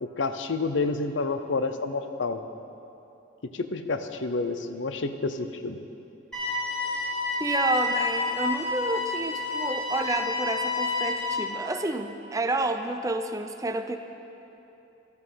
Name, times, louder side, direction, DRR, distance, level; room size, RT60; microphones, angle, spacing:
voice 1, 0.0-2.4 3.5-5.8, left 3 dB, 70° left, 9 dB, 0.7 m, -29 dB
sound 1, 6.3-11.3, left 3 dB, 5° left, 3.3 m, -29 dB
voice 2, 7.4-14.0, right 2 dB, 15° right, 7 dB, 0.5 m, -30 dB
13.0 x 11.5 x 5.7 m, 2.9 s
head